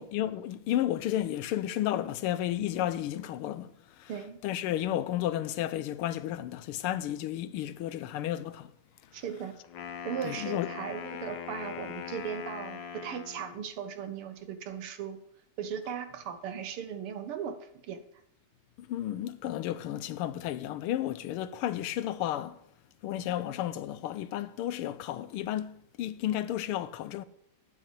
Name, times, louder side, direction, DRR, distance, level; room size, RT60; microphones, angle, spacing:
voice 1, 0.0-4.1 4.4-8.7 10.2-10.7 18.8-22.6 23.0-27.2, left 12 dB, 85° left, 1.6 m, -32 dB
voice 2, 9.1-9.6 10.0-15.2 15.6-18.0, right 8 dB, 85° right, 2.0 m, -38 dB
Wind instrument woodwind instrument, 9.6-13.6, left 8 dB, 65° left, 1.5 m, -41 dB
9.6 x 7.3 x 8.1 m
omnidirectional pair, 2.4 m